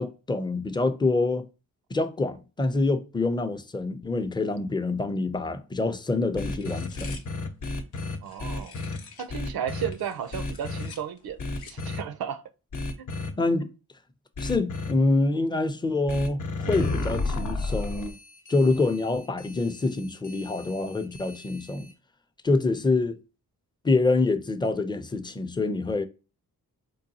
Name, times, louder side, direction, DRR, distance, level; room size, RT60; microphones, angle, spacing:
voice 1, 0.0-1.5 1.9-7.2 13.4-13.7 14.4-18.1 18.5-21.9 22.4-23.2 23.8-26.1, left 3 dB, 15° left, 0.4 m, -26 dB
sound 1, 6.4-9.4 9.8-11.9, left 5 dB, 85° left, 0.6 m, -49 dB
sound 2, 6.4-9.0 9.3-9.9 10.3-10.9 11.4-12.0 12.7-13.3 14.4-14.9 16.1-21.9, left 2 dB, 55° left, 0.7 m, -33 dB
voice 2, 8.2-8.7 9.2-11.4 11.7-12.4, right 9 dB, 75° right, 0.5 m, -33 dB
3.8 x 2.3 x 2.6 m
cardioid pair, 45°, 36 cm